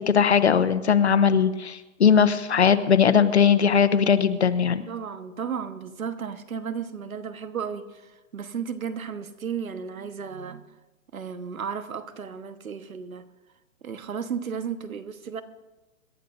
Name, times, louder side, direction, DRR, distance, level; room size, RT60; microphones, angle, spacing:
voice 1, 0.1-4.8, left 7 dB, 55° left, 12 dB, 0.9 m, -19 dB
voice 2, 4.9-10.7 11.1-13.2 13.8-15.4, right 7 dB, 90° right, 10 dB, 1.4 m, -34 dB
26.5 x 12.0 x 2.6 m, 1.1 s
hypercardioid pair, 180°, 41 cm